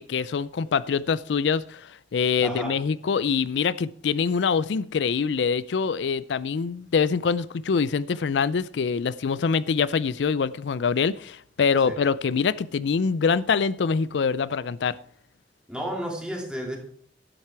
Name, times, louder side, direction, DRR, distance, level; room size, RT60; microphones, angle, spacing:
voice 1, 0.0-15.0, left 5 dB, 90° left, 0.4 m, -24 dB
voice 2, 2.4-2.8 11.8-12.0 15.7-16.8, equal, 5° right, 2.8 m, -32 dB
12.0 x 9.0 x 4.6 m
head